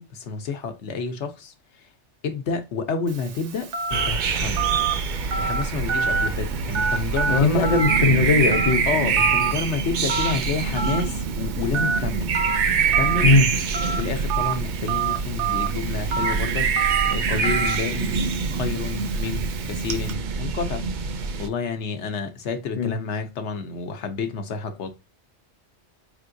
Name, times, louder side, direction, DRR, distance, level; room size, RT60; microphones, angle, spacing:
voice 1, 0.0-1.5 1.8-1.9 2.2-4.7 5.4-7.7 8.9-12.3 13.0-13.3 13.9-18.2 18.5-20.9 21.4-24.9, left 5 dB, 80° left, 1.1 m, -30 dB
Telephone, 3.1-20.1, right 6 dB, 85° right, 1.0 m, -29 dB
sound 1, 3.9-21.5, right 5 dB, 60° right, 0.5 m, -25 dB
voice 2, 7.3-8.8 13.2-13.5 22.8-22.9, left 3 dB, 40° left, 0.6 m, -19 dB
4.6 x 3.5 x 2.5 m
omnidirectional pair, 1.2 m